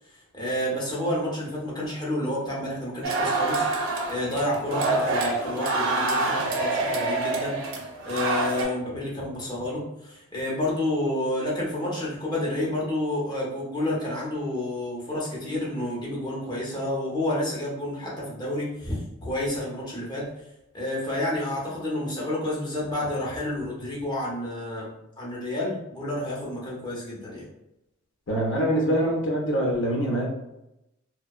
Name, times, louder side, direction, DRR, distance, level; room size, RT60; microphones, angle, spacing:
voice 1, 0.3-7.6 8.1-20.3 20.7-27.4, left 1 dB, 20° left, -5 dB, 0.7 m, -29 dB
sound 1, 3.0-8.6, right 3 dB, 70° right, 0.5 m, -26 dB
voice 2, 28.3-30.3, right 1 dB, 65° left, -1 dB, 0.6 m, -24 dB
2.7 x 2.1 x 2.3 m, 0.88 s
head